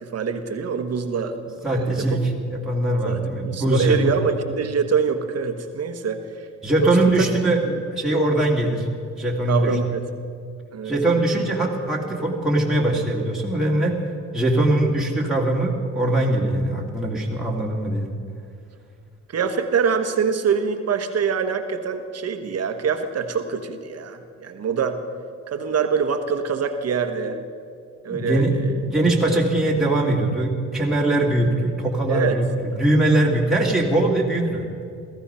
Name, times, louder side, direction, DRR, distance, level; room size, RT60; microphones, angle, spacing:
voice 1, 0.0-2.2 3.0-3.2 3.4-6.5 6.8-7.3 9.5-10.0 10.7-10.9 11.3-11.4 19.3-25.0 25.5-27.4 28.0-28.7 32.1-32.4, right 6 dB, 55° right, 7 dB, 1.4 m, -24 dB
voice 2, 1.6-2.2 2.5-4.0 6.6-8.9 9.2-9.7 10.8-14.0 14.3-18.1 28.1-32.5 32.8-34.7, right 1 dB, ahead, -3 dB, 2.5 m, -21 dB
17.5 x 14.5 x 5.6 m, 2.4 s
cardioid pair, 90°, 30 cm